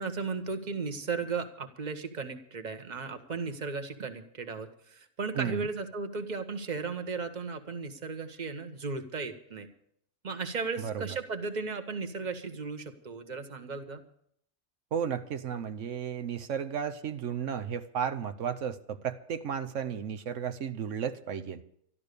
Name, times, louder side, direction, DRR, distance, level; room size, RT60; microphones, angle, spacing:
voice 1, 0.0-9.7 10.2-14.0, right 4 dB, 40° right, 7 dB, 1.4 m, -35 dB
voice 2, 5.3-5.7 10.8-11.2 14.9-21.6, right 8 dB, 85° right, 9 dB, 1.2 m, -34 dB
13.0 x 12.5 x 6.7 m, 0.68 s
omnidirectional pair, 1.2 m